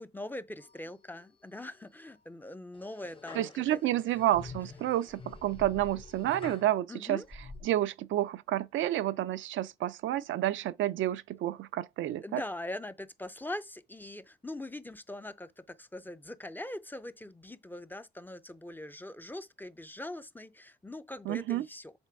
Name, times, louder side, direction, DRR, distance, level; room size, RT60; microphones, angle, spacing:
voice 1, 0.0-4.2 6.9-7.3 12.2-21.9, left 1 dB, 10° left, 0.5 m, -42 dB
sound 1, 0.6-1.3 1.7-2.2 2.7-6.7 7.2-7.6, left 4 dB, 25° left, 0.9 m, -48 dB
voice 2, 3.3-7.2 7.6-12.4 21.3-21.7, right 13 dB, 75° right, 0.5 m, -30 dB
7.0 x 3.2 x 4.6 m
cardioid pair, 90°, 20 cm